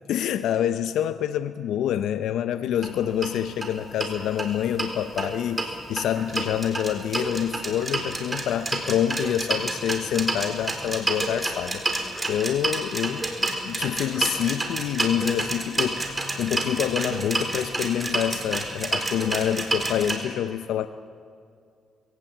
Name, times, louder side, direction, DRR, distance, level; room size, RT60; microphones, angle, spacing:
voice 1, 0.1-20.9, left 10 dB, 80° left, 11 dB, 0.6 m, -27 dB
sound 1, 2.7-2.9 3.2-3.3 3.6-3.7 4.0-4.9 5.2-20.1, right 2 dB, 20° right, 3.8 m, -29 dB
21.5 x 17.0 x 8.5 m, 2.3 s
cardioid pair, 90°, 0 cm